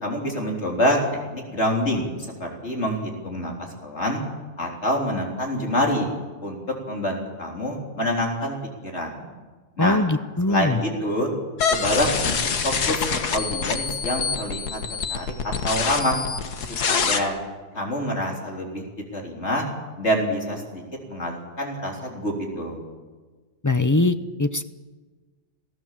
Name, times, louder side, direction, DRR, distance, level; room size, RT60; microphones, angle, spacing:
voice 1, 0.0-1.0 1.3-2.1 2.4-3.5 3.8-4.2 4.6-6.1 6.4-6.6 6.9-8.6 8.8-9.3 9.8-10.0 10.5-11.3 11.7-12.3 12.6-13.1 13.3-14.8 15.1-16.2 16.9-17.4 17.7-18.8 19.1-19.6 20.0-20.8 21.1-22.8, equal, 45° left, 0 dB, 4.0 m, -26 dB
voice 2, 9.8-10.8 23.6-24.6, left 2 dB, 25° left, 10 dB, 0.4 m, -22 dB
sound 1, 11.6-17.2, left 6 dB, 80° left, 1.9 m, -26 dB
27.5 x 17.0 x 7.5 m, 1.3 s
omnidirectional pair, 1.7 m